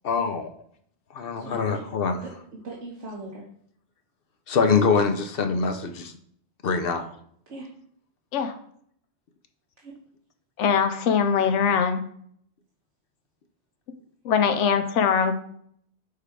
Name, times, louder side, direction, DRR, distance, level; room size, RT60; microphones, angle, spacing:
voice 1, 0.0-0.5 1.1-2.2 4.5-6.1 6.6-7.0, left 5 dB, 60° left, 7 dB, 0.8 m, -24 dB
voice 2, 1.3-1.8 2.2-3.5 7.5-7.7 9.8-9.9, right 2 dB, 85° right, -4 dB, 1.5 m, -39 dB
voice 3, 10.6-12.0 14.2-15.4, left 7 dB, 85° left, 8 dB, 1.0 m, -22 dB
6.6 x 3.3 x 4.7 m, 0.63 s
omnidirectional pair, 1.2 m